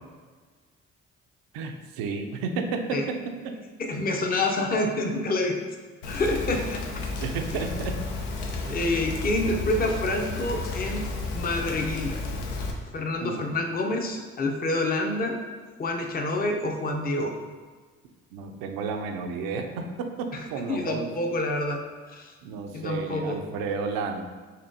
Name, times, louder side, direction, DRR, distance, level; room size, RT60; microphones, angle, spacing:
voice 1, 1.5-2.9 3.4-3.5 7.2-8.0 8.6-8.8 13.2-13.5 18.3-21.1 22.4-24.2, right 4 dB, 75° right, 5 dB, 0.5 m, -32 dB
voice 2, 3.8-5.6 6.0-6.8 7.5-7.6 8.7-11.1 11.3-12.2 12.9-15.4 15.8-17.4 20.3-20.4 20.7-22.3 22.7-23.4, left 2 dB, 25° left, 3 dB, 0.6 m, -27 dB
Rain, 6.0-12.7, left 3 dB, 85° left, 0.5 m, -32 dB
4.3 x 2.9 x 2.6 m, 1.4 s
hypercardioid pair, 50°, 36 cm